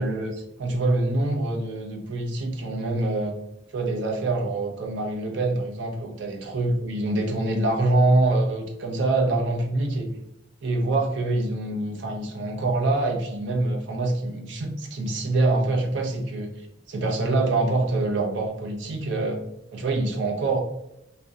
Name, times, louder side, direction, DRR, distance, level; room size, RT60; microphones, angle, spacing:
voice 1, 0.0-3.4 3.7-10.1 10.6-16.5 16.9-19.4 19.7-20.6, right 2 dB, 70° right, 1 dB, 0.5 m, -25 dB
2.6 x 2.0 x 2.3 m, 0.85 s
head